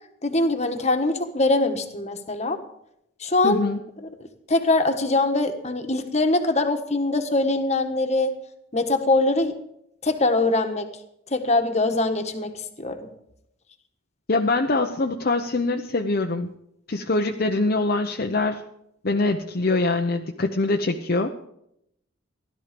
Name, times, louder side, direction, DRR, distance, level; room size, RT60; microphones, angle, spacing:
voice 1, 0.2-2.6 3.2-3.7 4.0-4.1 4.5-8.3 8.7-9.5 10.0-10.9 11.3-12.5 12.8-13.0, left 2 dB, 35° left, 7 dB, 1.5 m, -22 dB
voice 2, 3.4-3.8 14.3-16.5 16.9-18.6 19.0-21.3, left 2 dB, 50° left, 3 dB, 0.8 m, -23 dB
16.0 x 12.5 x 5.2 m, 0.76 s
head